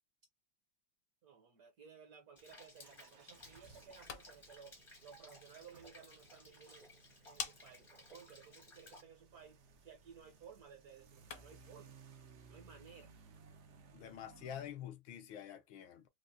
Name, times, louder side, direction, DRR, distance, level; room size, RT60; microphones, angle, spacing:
voice 1, 1.2-6.8 7.2-11.9 12.5-13.2, right 7 dB, 60° right, 1.1 m, -58 dB
Rain, 2.4-9.0, left 2 dB, 30° left, 0.6 m, -59 dB
sound 1, 2.8-14.7, right 5 dB, 80° right, 0.6 m, -62 dB
sound 2, 3.8-11.7, left 7 dB, 65° left, 1.1 m, -53 dB
voice 2, 13.9-16.1, left 9 dB, 85° left, 1.5 m, -47 dB
4.9 x 2.1 x 2.6 m
omnidirectional pair, 2.1 m